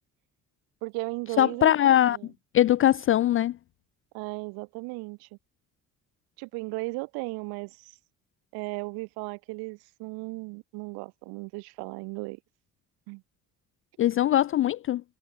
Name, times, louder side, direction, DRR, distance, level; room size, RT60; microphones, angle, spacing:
voice 1, 0.8-1.7 2.1-2.3 4.1-5.3 6.4-8.0 8.5-12.4 13.1-13.2, right 27 dB, 65° right, 1.0 m, -36 dB
voice 2, 1.4-2.2 2.5-3.6 14.0-15.0, left 12 dB, 35° left, 0.4 m, -21 dB
figure-of-eight pair, 50°, 41 cm